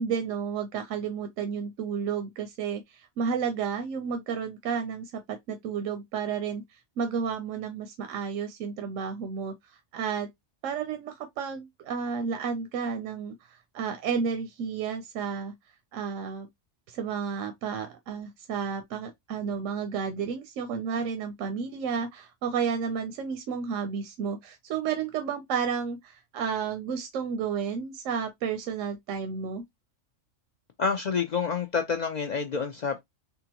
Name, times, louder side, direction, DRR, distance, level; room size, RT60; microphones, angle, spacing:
voice 1, 0.0-6.6 7.0-10.3 10.6-15.5 15.9-16.5 16.9-29.6, right 6 dB, 85° right, 1.0 m, -32 dB
voice 2, 30.8-33.0, left 5 dB, 65° left, 0.4 m, -28 dB
3.6 x 2.5 x 2.8 m
omnidirectional pair, 1.3 m